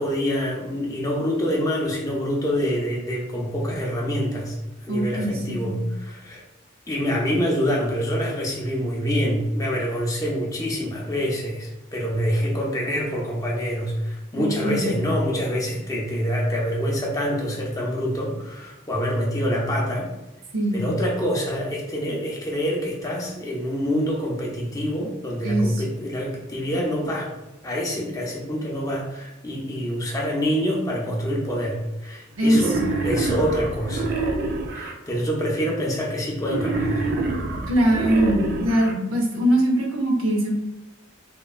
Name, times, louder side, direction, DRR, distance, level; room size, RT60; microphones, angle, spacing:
voice 1, 0.0-4.6 4.8-6.4 6.9-20.1 20.7-27.3 27.6-34.1 34.7-37.0, equal, 15° left, -3 dB, 0.5 m, -26 dB
voice 2, 4.9-5.8 14.4-14.9 20.5-20.9 25.4-25.7 32.4-32.9 37.7-40.5, right 1 dB, 85° right, 0 dB, 0.7 m, -22 dB
Wild animals, 32.4-34.9 36.4-38.9, right 3 dB, 50° right, 0.3 m, -26 dB
3.0 x 2.1 x 2.3 m, 0.97 s
head